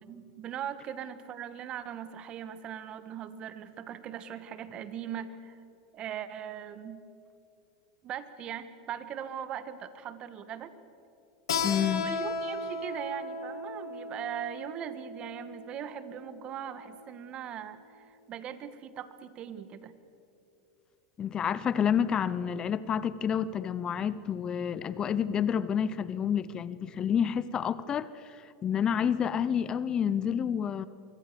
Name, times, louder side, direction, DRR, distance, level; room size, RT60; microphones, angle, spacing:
voice 1, 0.0-5.6 5.9-7.0 8.0-10.7 11.8-20.0, right 9 dB, 40° right, 13 dB, 1.7 m, -40 dB
Keyboard (musical), 11.5-16.8, left 4 dB, 85° left, 2.6 m, -36 dB
voice 2, 11.6-12.1 21.2-30.9, left 8 dB, 30° left, 17 dB, 0.8 m, -29 dB
24.5 x 24.0 x 7.0 m, 2.9 s
hypercardioid pair, 105°, 3 cm